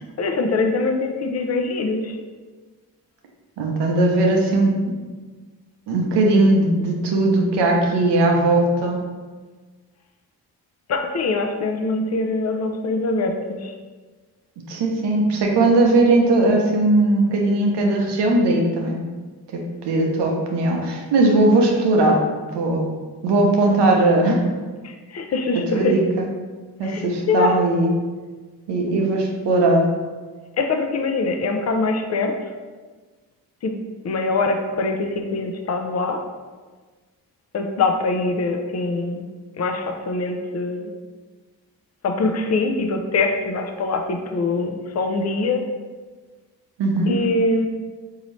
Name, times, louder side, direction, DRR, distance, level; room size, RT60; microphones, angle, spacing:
voice 1, 0.2-2.2 10.9-13.7 24.8-25.9 26.8-27.5 30.6-32.3 33.6-33.7 34.0-36.2 37.5-39.2 39.6-40.9 42.0-45.6 47.1-47.7, left 3 dB, 40° left, 5 dB, 0.5 m, -23 dB
voice 2, 3.6-4.8 5.9-9.0 14.7-19.0 19.8-22.2 22.5-24.4 25.7-26.3 26.8-27.9 28.7-29.9 46.8-47.1, right 2 dB, 80° right, 1 dB, 0.7 m, -19 dB
4.0 x 2.7 x 3.1 m, 1.4 s
supercardioid pair, 45°, 41 cm